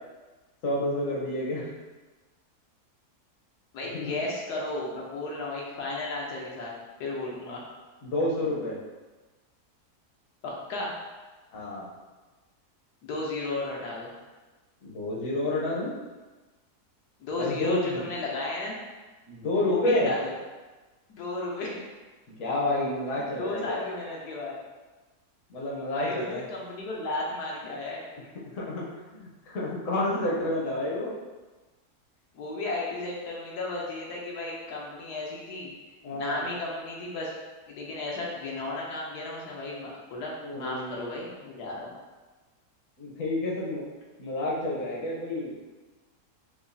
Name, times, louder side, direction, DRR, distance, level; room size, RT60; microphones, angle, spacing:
voice 1, 0.6-1.7 3.9-4.2 8.0-8.8 11.5-11.9 14.8-15.9 17.4-18.1 19.3-20.1 22.4-23.9 25.5-26.4 28.5-28.9 29.1-31.1 36.0-36.4 40.4-41.2 43.0-43.8 44.2-45.5, left 1 dB, 60° left, -5 dB, 1.1 m, -29 dB
voice 2, 3.7-6.7 7.0-7.6 10.4-10.9 13.0-14.1 17.2-18.8 19.7-20.3 21.1-21.8 23.1-24.5 25.9-28.1 32.3-35.7 36.1-37.3 37.7-41.9, left 2 dB, 85° left, -3 dB, 1.3 m, -34 dB
4.8 x 2.4 x 2.6 m, 1.2 s
omnidirectional pair, 1.7 m